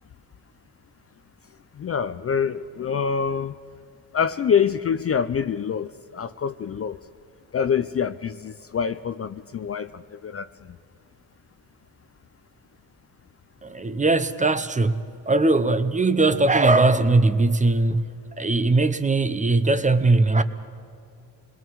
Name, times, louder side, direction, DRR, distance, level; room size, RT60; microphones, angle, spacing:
voice 1, 1.8-3.5 4.1-7.0 7.5-10.5, left 7 dB, 35° left, 0.5 m, -25 dB
voice 2, 13.6-20.4, right 2 dB, 20° right, 0.7 m, -20 dB
27.0 x 21.5 x 4.7 m
cardioid pair, 130°, 41 cm